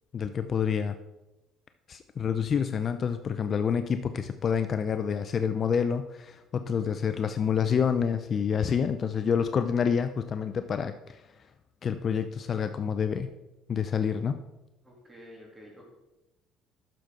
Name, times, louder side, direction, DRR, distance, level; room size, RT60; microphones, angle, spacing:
voice 1, 0.1-1.0 1.9-11.2 11.8-13.3 13.7-14.4, left 7 dB, 40° left, 9 dB, 0.5 m, -28 dB
voice 2, 14.8-15.9, equal, 15° right, -2 dB, 3.1 m, -49 dB
12.0 x 6.6 x 3.8 m, 0.99 s
cardioid pair, 120°, 0 cm